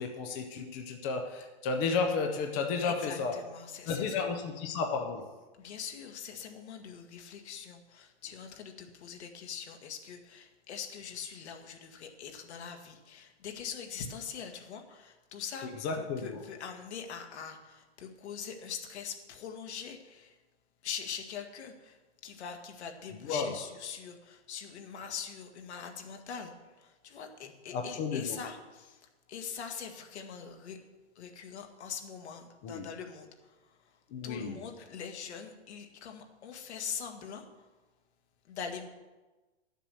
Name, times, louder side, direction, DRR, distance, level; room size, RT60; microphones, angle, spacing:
voice 1, 0.0-3.4 3.9-5.3 15.8-16.4 23.2-23.5 27.7-28.4 32.6-32.9 34.1-34.5, left 4 dB, 20° left, 3 dB, 0.5 m, -32 dB
voice 2, 2.8-4.3 5.6-20.4 20.8-30.8 31.2-37.7 38.4-38.9, left 7 dB, 65° left, 4 dB, 1.9 m, -43 dB
11.0 x 7.5 x 6.8 m, 1.2 s
hypercardioid pair, 165°, 35 cm